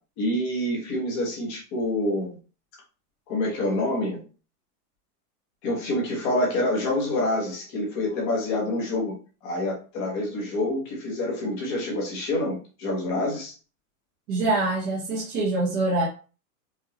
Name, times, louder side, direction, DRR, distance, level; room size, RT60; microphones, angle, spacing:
voice 1, 0.2-2.4 3.3-4.2 5.6-9.2 9.4-13.5, left 1 dB, 20° left, -2 dB, 0.8 m, -27 dB
voice 2, 14.3-16.1, right 2 dB, 15° right, -8 dB, 0.7 m, -24 dB
4.8 x 2.2 x 2.8 m, 0.36 s
supercardioid pair, 180°, 46 cm